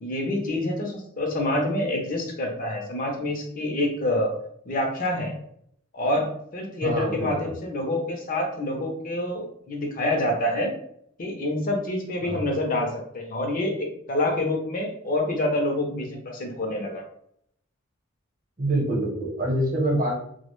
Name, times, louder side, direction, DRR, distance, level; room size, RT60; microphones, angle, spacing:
voice 1, 0.0-4.3 4.7-5.3 5.9-10.7 11.2-17.0, left 1 dB, 40° left, 1 dB, 0.5 m, -27 dB
voice 2, 6.8-7.5 12.2-12.5 18.6-20.2, right 1 dB, 40° right, -2 dB, 0.8 m, -26 dB
2.2 x 2.1 x 3.0 m, 0.68 s
head